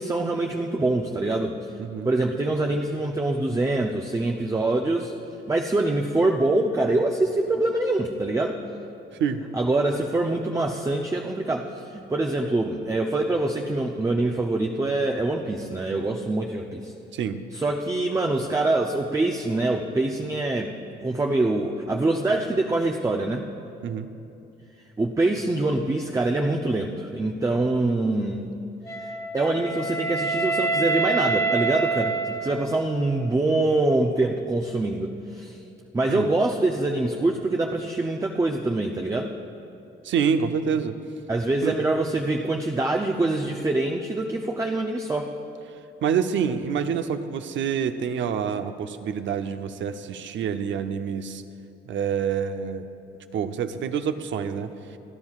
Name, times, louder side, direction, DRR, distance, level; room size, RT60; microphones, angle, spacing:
voice 1, 0.0-1.6 2.0-5.1 5.5-8.6 9.5-16.9 17.5-20.7 21.0-23.5 25.0-28.5 28.9-35.6 35.9-39.3 41.3-45.3, right 2 dB, 15° right, 2 dB, 0.6 m, -24 dB
voice 2, 1.8-2.1 9.2-9.4 17.1-17.4 23.8-24.1 36.1-36.3 40.0-40.9 41.6-41.8 46.0-51.4 51.9-52.9 53.3-55.0, right 7 dB, 70° right, 9 dB, 0.7 m, -27 dB
Wind instrument woodwind instrument, 28.9-33.0, right 3 dB, 20° left, 1.1 m, -26 dB
28.0 x 10.5 x 2.4 m, 2.8 s
cardioid pair, 90°, 20 cm